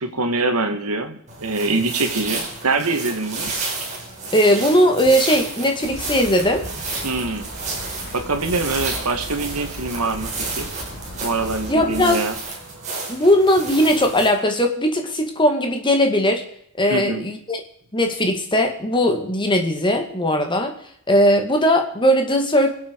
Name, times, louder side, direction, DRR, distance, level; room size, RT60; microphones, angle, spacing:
voice 1, 0.0-3.5 7.0-7.5 8.1-10.7 11.2-12.3 16.9-17.2, right 3 dB, 85° right, 7 dB, 2.0 m, -24 dB
sound 1, 1.3-14.3, right 3 dB, 35° right, 4.6 m, -31 dB
voice 2, 4.3-6.6 11.7-12.2 13.1-16.4 16.8-17.6 17.9-20.7 21.1-22.7, equal, 20° left, 4 dB, 2.1 m, -18 dB
sound 2, 5.8-12.1, equal, 50° left, 2.7 m, -37 dB
25.0 x 8.4 x 4.8 m, 0.68 s
head